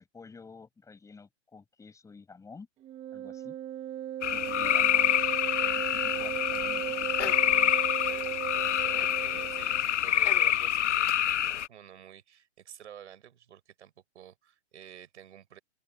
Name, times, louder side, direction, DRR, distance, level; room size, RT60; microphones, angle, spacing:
voice 1, 0.0-2.7 3.1-3.5 4.3-7.9 8.2-8.3, left 4 dB, 10° left, 6.7 m, -51 dB
Wind instrument woodwind instrument, 2.8-9.8, right 11 dB, 15° right, 1.0 m, -36 dB
sound 1, 4.2-11.7, left 11 dB, 70° left, 1.1 m, -27 dB
voice 2, 8.8-15.6, right 10 dB, 70° right, 6.4 m, -50 dB
hypercardioid pair, 145°, 37 cm